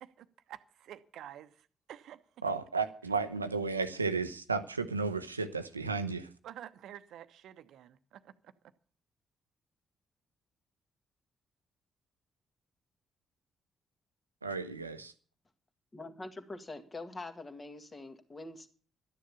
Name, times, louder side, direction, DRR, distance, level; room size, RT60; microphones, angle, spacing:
voice 1, 0.0-2.6 6.4-8.5, right 11 dB, 60° right, 0.9 m, -50 dB
voice 2, 2.4-6.3 14.4-15.1, right 4 dB, 90° right, 0.7 m, -33 dB
voice 3, 15.9-18.7, left 2 dB, 30° left, 2.1 m, -44 dB
13.0 x 10.0 x 7.0 m
figure-of-eight pair, 40°, 0 cm